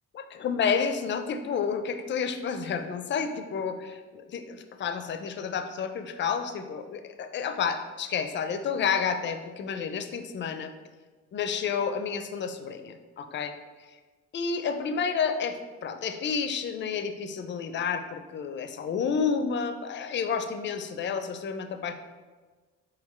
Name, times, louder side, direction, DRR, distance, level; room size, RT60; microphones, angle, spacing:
voice 1, 0.1-10.7 11.3-13.5 14.3-21.9, left 6 dB, 40° left, 9 dB, 0.4 m, -30 dB
4.3 x 3.6 x 3.1 m, 1.4 s
cardioid pair, 90°, 30 cm